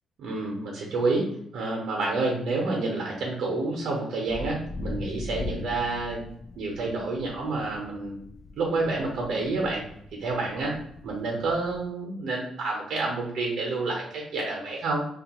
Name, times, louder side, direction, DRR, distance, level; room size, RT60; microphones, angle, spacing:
voice 1, 0.2-6.2 6.6-8.2 8.6-9.8 10.1-10.8 11.0-15.0, right 3 dB, 70° right, -1 dB, 0.7 m, -29 dB
sound 1, 4.3-11.9, left 3 dB, 40° left, 0.4 m, -40 dB
2.8 x 2.3 x 2.8 m, 0.70 s
cardioid pair, 90°, 0 cm